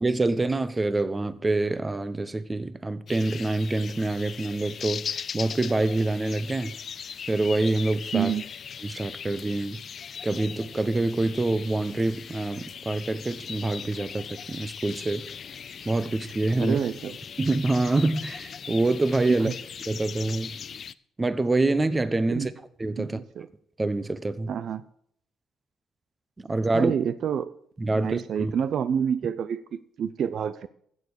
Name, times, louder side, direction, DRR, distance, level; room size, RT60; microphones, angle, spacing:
voice 1, 0.0-6.7 7.3-8.3 8.8-9.8 10.2-15.2 15.9-16.8 17.4-19.5 19.9-20.6 21.2-22.5 22.8-23.2 23.8-24.5 26.4-26.9 27.8-28.5, right 2 dB, 20° right, 14 dB, 0.9 m, -26 dB
sound 1, 3.1-20.9, left 7 dB, 55° left, 0.5 m, -39 dB
voice 2, 8.1-8.4 16.6-17.2 19.4-19.5 22.3-22.5 23.0-23.5 24.5-24.8 26.7-27.5 27.9-30.7, right 8 dB, 65° right, 14 dB, 0.5 m, -28 dB
15.0 x 7.0 x 6.4 m, 0.66 s
cardioid pair, 90°, 0 cm